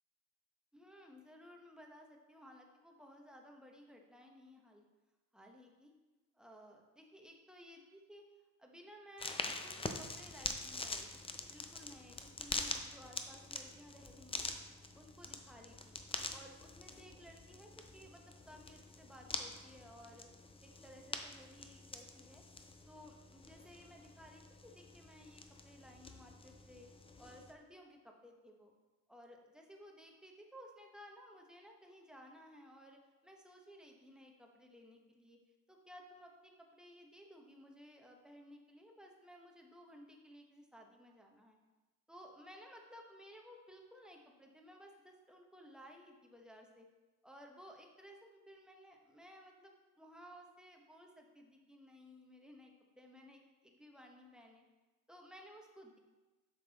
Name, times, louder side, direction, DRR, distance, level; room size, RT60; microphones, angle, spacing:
voice 1, 0.7-4.8 5.3-5.9 6.3-8.2 8.6-11.1 11.5-14.5 15.0-16.0 16.3-20.3 20.6-22.4 22.9-26.9 27.2-28.7 29.1-35.4 35.7-41.6 42.1-46.9 47.2-54.6 55.1-56.0, equal, ahead, 1 dB, 0.8 m, -57 dB
sound 1, 9.2-27.5, left 3 dB, 15° left, 0.4 m, -45 dB
7.3 x 6.1 x 3.9 m, 1.2 s
wide cardioid pair, 160°, 36 cm